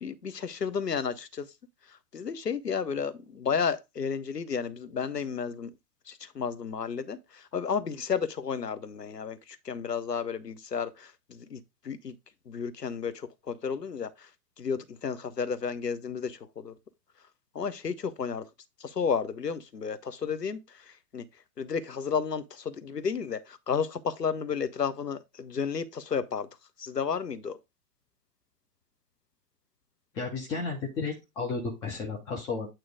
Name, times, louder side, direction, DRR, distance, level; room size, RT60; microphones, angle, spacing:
voice 1, 0.0-1.5 2.1-5.7 6.1-9.4 9.6-11.6 11.8-12.1 12.5-14.3 14.6-16.7 17.5-18.5 18.8-20.6 21.1-21.2 21.6-26.5 26.8-27.6, left 6 dB, 85° left, 0.9 m, -32 dB
voice 2, 30.1-32.7, left 4 dB, 10° left, 0.4 m, -33 dB
9.0 x 3.0 x 4.8 m
figure-of-eight pair, 100°, 47 cm